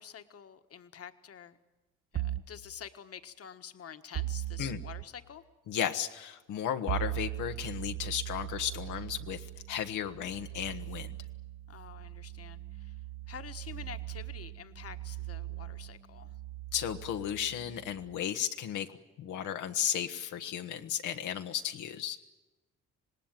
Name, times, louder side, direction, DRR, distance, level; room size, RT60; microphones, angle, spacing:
voice 1, 0.0-1.6 2.1-5.4 11.7-16.4, left 8 dB, 50° left, 9 dB, 1.5 m, -48 dB
sound 1, 2.2-2.6 4.1-5.1 6.9-18.2, right 15 dB, 45° right, 0.9 m, -40 dB
voice 2, 5.7-11.1 16.7-18.9 19.2-22.2, left 9 dB, 85° left, 5 dB, 1.3 m, -34 dB
26.5 x 19.0 x 9.1 m, 1.1 s
cardioid pair, 90°, 30 cm